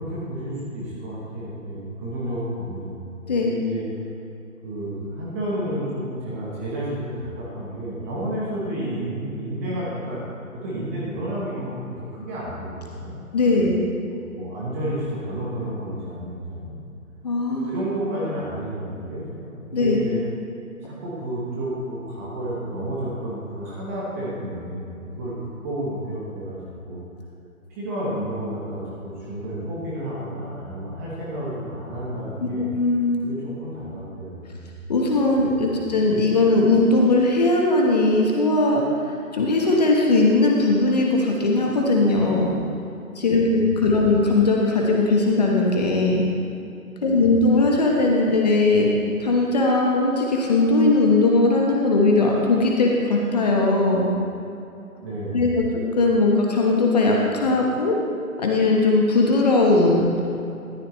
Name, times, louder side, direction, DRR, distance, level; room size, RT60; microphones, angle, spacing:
voice 1, 0.0-3.1 3.4-3.8 4.6-10.2 10.6-13.1 13.5-13.7 14.1-16.8 17.5-20.2 20.8-26.6 26.9-27.0 27.7-32.7 33.2-34.7 35.3-35.4 43.3-43.7 44.0-44.2 47.0-47.4 55.0-55.5, right 1 dB, 10° right, -7 dB, 1.1 m, -31 dB
voice 2, 13.3-13.8 17.2-17.8 19.7-20.0 32.4-33.3 34.9-38.8 39.3-42.5 43.1-46.2 47.0-48.9 49.2-54.1 55.3-55.6 56.0-57.9 58.4-60.1, left 2 dB, 30° left, -1 dB, 1.2 m, -19 dB
13.5 x 11.5 x 3.2 m, 2.8 s
figure-of-eight pair, 150°, 44 cm